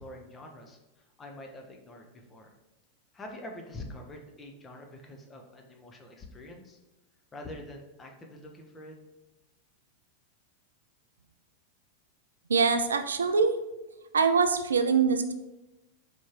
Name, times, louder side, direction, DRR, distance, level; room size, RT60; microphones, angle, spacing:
voice 1, 0.0-2.5 3.1-6.8 7.3-9.0, left 1 dB, 20° left, 2 dB, 0.7 m, -45 dB
voice 2, 12.5-13.6 14.1-15.3, right 5 dB, 70° right, 9 dB, 0.3 m, -24 dB
4.4 x 3.6 x 3.0 m, 1.0 s
figure-of-eight pair, 90°, 0 cm